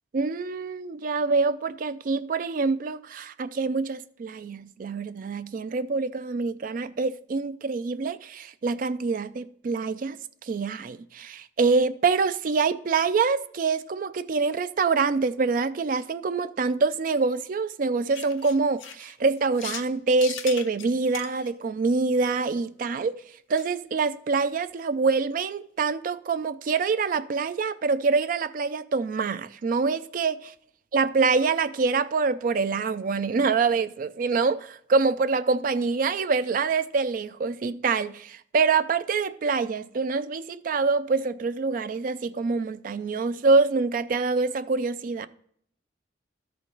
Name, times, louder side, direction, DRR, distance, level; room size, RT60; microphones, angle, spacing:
voice 1, 0.1-10.2 10.5-23.1 23.5-30.4 30.9-45.3, right 4 dB, 45° right, 0.3 m, -25 dB
sound 1, 18.1-19.9 20.2-21.5 23.6-23.7 24.0-24.1 24.3-24.4 24.8-24.9, left 9 dB, 85° left, 0.5 m, -38 dB
13.0 x 4.5 x 3.9 m
head